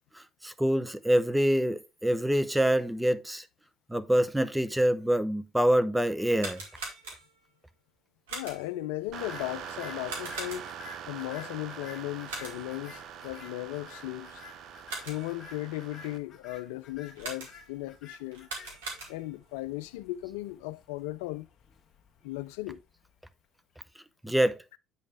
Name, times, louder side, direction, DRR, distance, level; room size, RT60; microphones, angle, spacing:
voice 1, 0.4-3.4 3.9-6.6 24.2-24.6, right 1 dB, 5° right, 0.7 m, -25 dB
sound 1, 6.2-7.5 8.3-8.8 10.0-10.9 12.3-12.8 14.6-15.4 17.2-17.8 18.3-19.4, right 3 dB, 85° right, 2.5 m, -41 dB
voice 2, 8.3-10.7 11.1-14.4 15.1-18.5 19.1-21.5 22.2-22.8, left 17 dB, 75° left, 0.4 m, -36 dB
sound 2, 9.1-23.4, left 5 dB, 50° left, 1.6 m, -52 dB
sound 3, 9.1-16.2, right 8 dB, 60° right, 0.8 m, -43 dB
8.3 x 5.2 x 3.3 m
hypercardioid pair, 60°, 0 cm